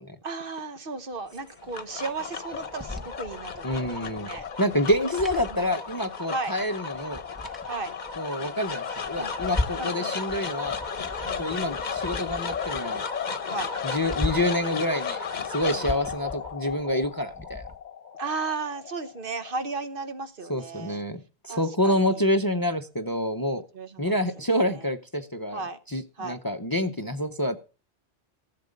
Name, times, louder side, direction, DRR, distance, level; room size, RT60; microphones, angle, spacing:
voice 1, 0.2-4.4 5.5-5.7 6.3-6.5 7.7-7.9 9.2-9.3 9.8-10.2 11.2-11.5 13.5-13.7 15.7-15.9 18.2-21.0 21.5-22.2 23.5-24.2 24.7-24.8 25.5-25.8 26.2-26.4, right 4 dB, 55° right, 10 dB, 1.2 m, -35 dB
sound 1, 1.4-19.7, left 6 dB, 45° left, 1.0 m, -34 dB
sound 2, 2.5-6.2 6.5-6.6 6.9-8.2 8.7-10.0 10.3-12.9 13.2-13.3 13.6-14.6 15.3-17.8, left 2 dB, ahead, 1.3 m, -37 dB
voice 2, 3.6-4.3 4.6-7.2 8.2-10.8 11.4-13.0 13.8-17.6 20.5-23.6 24.0-27.6, left 1 dB, 20° left, 10 dB, 0.7 m, -27 dB
14.5 x 7.6 x 5.2 m, 0.34 s
omnidirectional pair, 1.1 m